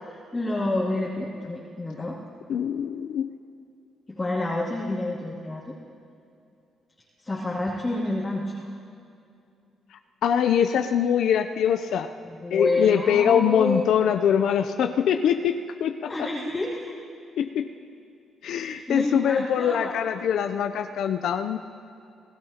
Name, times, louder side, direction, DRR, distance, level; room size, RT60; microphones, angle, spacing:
voice 1, 0.1-2.2 4.1-5.7 7.2-8.7 12.2-13.8 16.1-16.9 18.5-20.0, left 2 dB, 20° left, -9 dB, 2.6 m, -29 dB
voice 2, 2.5-3.3 10.2-12.1 12.5-16.1 17.4-17.6 18.4-21.6, left 8 dB, 75° left, 7 dB, 0.5 m, -23 dB
28.5 x 17.0 x 2.9 m, 2.5 s
cardioid pair, 90°, 0 cm